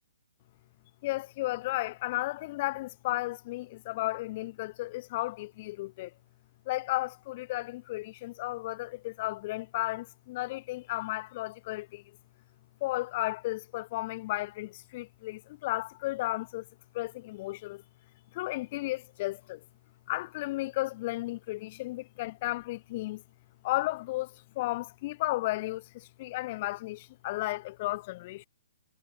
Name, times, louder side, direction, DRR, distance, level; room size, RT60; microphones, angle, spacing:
voice 1, 1.0-6.1 6.7-12.0 12.8-16.7 16.9-17.8 18.3-19.6 20.1-23.2 23.6-28.4, left 19 dB, 35° left, 0.7 m, -34 dB
hypercardioid pair, 160°, 0 cm